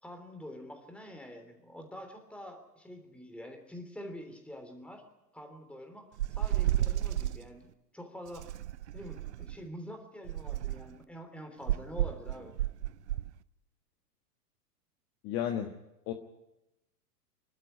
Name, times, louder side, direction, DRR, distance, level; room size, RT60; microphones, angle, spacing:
voice 1, 0.0-5.0 5.3-7.7 7.9-8.5 8.9-12.5, equal, ahead, 4 dB, 3.2 m, -46 dB
sound 1, 6.2-7.4 8.3-9.6 10.2-10.9 11.7-13.3, right 13 dB, 45° right, 0.7 m, -32 dB
voice 2, 15.2-15.7 16.1-16.2, left 10 dB, 30° left, 4 dB, 1.5 m, -32 dB
26.5 x 12.0 x 9.8 m, 0.95 s
figure-of-eight pair, 105°, 49 cm